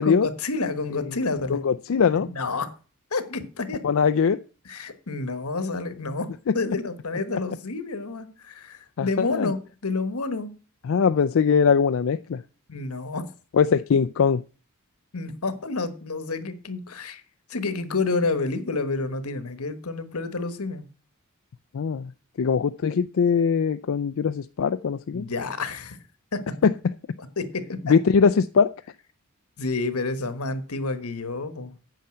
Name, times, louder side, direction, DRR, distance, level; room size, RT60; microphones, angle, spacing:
voice 1, 0.0-1.6 2.1-2.7 3.1-3.8 4.6-6.3 6.5-9.6 9.8-10.5 12.7-13.3 15.1-17.2 17.5-20.8 25.1-26.0 26.3-26.4 27.2-27.9 29.6-31.7, left 3 dB, 85° left, 11 dB, 1.3 m, -29 dB
voice 2, 1.5-2.3 3.8-4.4 6.5-6.6 9.0-9.5 10.9-12.4 13.5-14.4 21.7-22.1 22.4-25.3 26.6-26.7 27.9-28.7, left 6 dB, 65° left, 10 dB, 0.4 m, -21 dB
9.2 x 5.7 x 7.6 m, 0.36 s
head